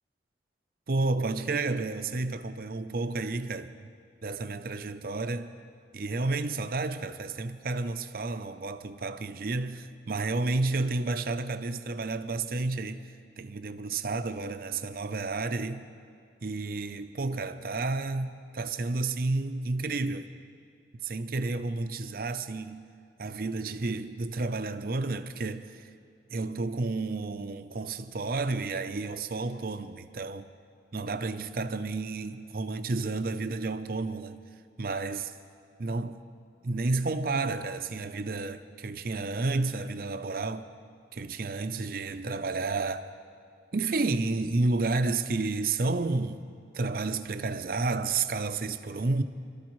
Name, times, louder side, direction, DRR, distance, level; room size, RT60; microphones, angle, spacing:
voice 1, 0.9-3.9 4.2-5.5 5.9-13.1 13.4-15.9 16.4-20.3 21.0-22.9 23.2-25.9 26.3-30.5 30.9-34.4 34.8-35.3 35.8-36.2 36.6-40.7 41.1-43.1 43.7-46.5 46.7-49.2, right 3 dB, 55° right, 0.6 m, -31 dB
26.5 x 13.0 x 3.1 m
head